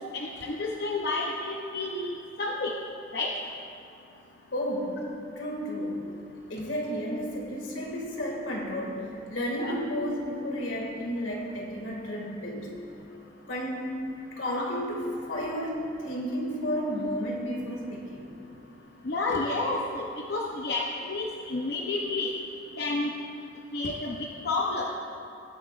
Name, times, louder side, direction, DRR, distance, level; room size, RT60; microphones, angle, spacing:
voice 1, 0.0-2.8 3.1-3.3 9.6-9.8 14.5-14.7 19.0-22.3 22.8-23.1 23.7-24.2 24.4-24.9, left 2 dB, 55° left, -2 dB, 0.7 m, -30 dB
voice 2, 4.5-5.0 5.4-6.0 6.5-12.7 13.5-13.9 14.3-18.3, equal, 85° left, -1 dB, 2.0 m, -32 dB
19.0 x 9.5 x 2.4 m, 2.7 s
head